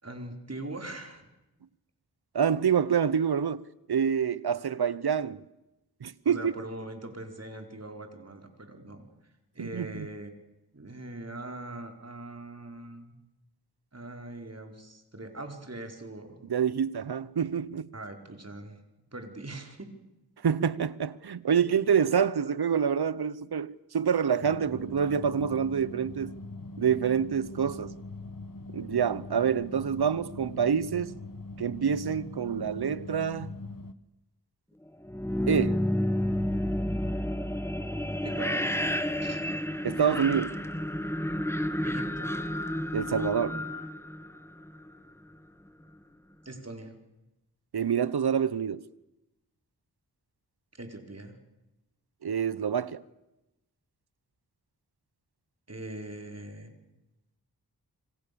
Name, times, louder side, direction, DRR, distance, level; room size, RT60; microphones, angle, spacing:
voice 1, 0.0-1.3 6.2-9.0 9.5-10.3 10.7-13.1 13.9-16.4 17.9-18.8 19.1-19.9 38.2-38.7 39.2-39.4 41.8-42.3 46.4-47.0 50.7-51.4 55.7-56.7, right 2 dB, 40° right, 4.9 m, -41 dB
voice 2, 2.3-3.6 3.9-5.4 6.0-6.5 9.6-10.1 16.5-17.9 20.4-26.3 26.8-27.9 28.7-31.1 31.6-33.5 35.5-35.8 39.8-40.6 42.9-43.6 47.7-48.8 52.2-53.0, right 7 dB, 80° right, 1.0 m, -27 dB
sound 1, 24.4-33.9, left 2 dB, 60° left, 1.5 m, -42 dB
sound 2, 35.0-44.9, left 1 dB, 5° left, 1.9 m, -30 dB
27.0 x 25.5 x 7.0 m
wide cardioid pair, 50°, 38 cm